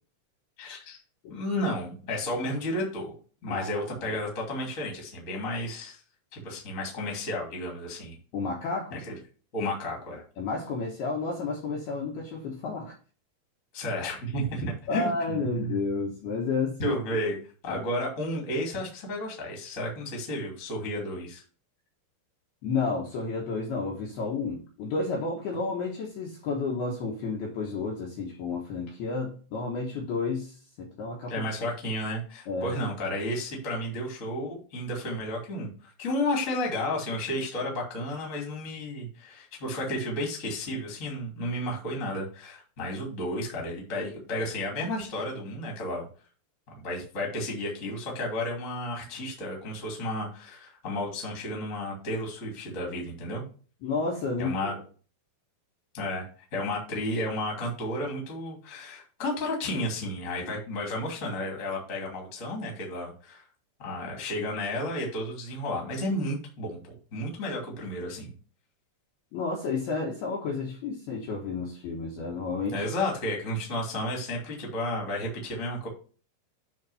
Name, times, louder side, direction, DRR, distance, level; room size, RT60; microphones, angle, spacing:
voice 1, 0.6-1.0 1.3-3.1 3.4-6.0 6.3-8.1 8.9-9.2 9.5-10.2 13.7-15.8 16.8-17.4 17.6-21.4 31.3-46.1 46.8-53.4 54.4-54.7 55.9-63.4 63.8-66.8 67.1-68.3 72.7-75.9, left 1 dB, 25° left, 1.8 m, -32 dB
voice 2, 8.3-9.0 10.4-12.9 14.9-16.9 17.7-17.8 22.6-31.4 32.5-32.8 53.8-54.7 69.3-72.9, left 4 dB, 70° left, 2.6 m, -31 dB
9.6 x 3.7 x 5.5 m
omnidirectional pair, 5.8 m